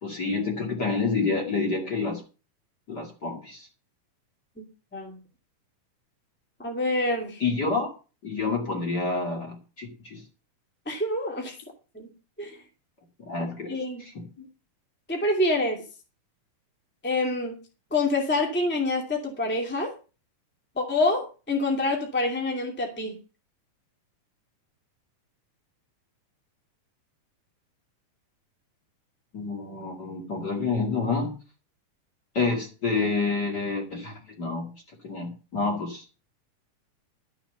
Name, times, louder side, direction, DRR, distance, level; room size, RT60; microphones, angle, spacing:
voice 1, 0.0-2.2 2.9-3.7 7.4-7.9 8.2-10.2 13.2-13.7 14.0-14.5 29.3-31.3 32.3-34.7 35.0-36.0, left 4 dB, 35° left, 1 dB, 2.6 m, -28 dB
voice 2, 6.6-7.4 10.9-11.5 11.9-12.1 12.4-12.6 13.7-14.0 15.1-15.8 17.0-17.6 17.9-19.9 20.8-23.2, left 2 dB, 5° left, 2 dB, 2.2 m, -26 dB
13.0 x 7.5 x 6.8 m, 0.34 s
omnidirectional pair, 3.7 m